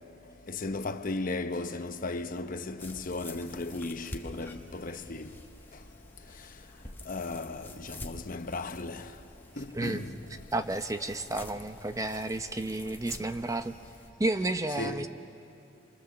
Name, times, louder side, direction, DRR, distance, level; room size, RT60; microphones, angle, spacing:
voice 1, 0.5-5.3 7.1-9.0 9.6-10.1 14.8-15.1, left 3 dB, 45° left, 0.8 m, -35 dB
sound 1, 2.8-14.1, left 1 dB, 10° left, 1.3 m, -48 dB
voice 2, 10.5-13.7 14.2-15.1, right 2 dB, 15° right, 0.7 m, -31 dB
29.5 x 24.5 x 7.1 m
head